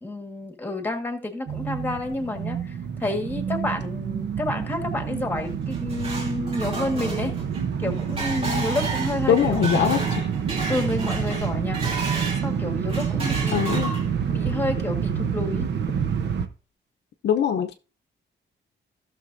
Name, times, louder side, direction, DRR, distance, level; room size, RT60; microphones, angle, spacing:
voice 1, 0.0-7.3 7.8-10.0 10.7-11.8 12.4-13.6 14.3-15.7, left 2 dB, 10° left, 1.6 m, -30 dB
sound 1, 1.5-16.5, right 7 dB, 65° right, 0.9 m, -28 dB
sound 2, 5.5-12.5 12.9-14.3, right 2 dB, 30° right, 2.4 m, -32 dB
voice 2, 9.3-10.3 13.5-13.9 17.2-17.7, left 8 dB, 65° left, 0.7 m, -22 dB
16.0 x 6.3 x 2.6 m
wide cardioid pair, 180°, 19 cm